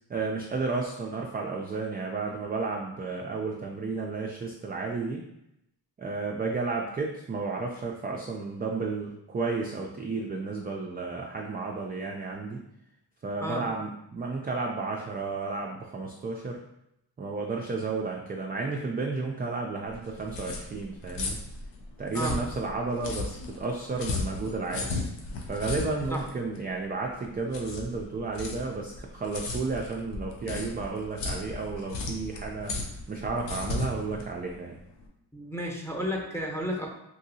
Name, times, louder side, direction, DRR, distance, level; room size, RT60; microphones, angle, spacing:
voice 1, 0.1-5.2 6.0-12.6 13.2-16.6 17.2-21.4 22.0-24.9 25.5-32.7 33.1-34.8, right 3 dB, 25° right, 0 dB, 0.3 m, -32 dB
sound 1, 19.9-35.1, left 3 dB, 80° left, 0.7 m, -36 dB
voice 2, 35.3-36.9, equal, 5° left, -1 dB, 0.7 m, -32 dB
3.0 x 2.6 x 2.7 m, 0.81 s
cardioid pair, 75°, 42 cm